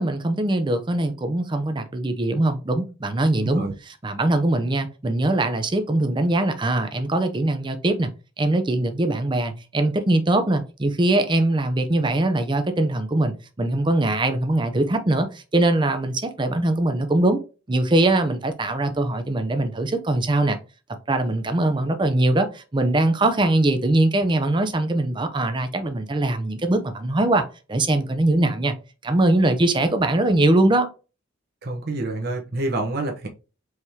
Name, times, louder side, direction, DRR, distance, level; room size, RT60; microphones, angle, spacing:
voice 1, 0.0-8.1 8.4-17.4 17.7-20.6 21.1-27.4 27.7-28.7 29.0-30.9, right 2 dB, 25° right, 0.5 m, -22 dB
voice 2, 3.3-3.7 18.9-19.0 31.6-33.3, right 2 dB, 50° right, 0.8 m, -28 dB
4.7 x 3.5 x 2.8 m
head